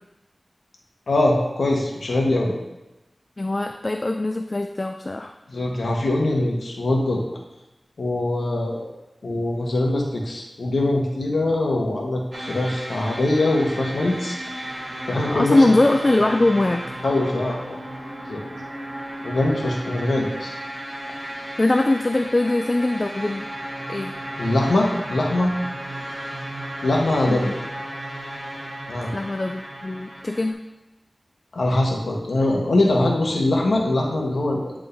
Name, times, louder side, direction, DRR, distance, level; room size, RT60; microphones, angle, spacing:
voice 1, 1.1-2.5 5.5-7.2 8.0-8.9 9.2-14.4 15.1-15.6 17.0-17.8 18.3-18.4 19.2-20.5 24.4-25.5 26.8-27.5 28.9-29.1 31.5-34.7, left 2 dB, 90° left, -1 dB, 1.2 m, -22 dB
voice 2, 3.4-5.3 15.3-16.9 21.6-23.5 23.9-24.1 27.3-27.5 29.1-30.6, left 2 dB, 35° left, 5 dB, 0.3 m, -21 dB
sound 1, 12.3-30.5, right 1 dB, 35° right, 1.0 m, -34 dB
9.8 x 3.6 x 2.7 m, 0.99 s
wide cardioid pair, 85°, 0 cm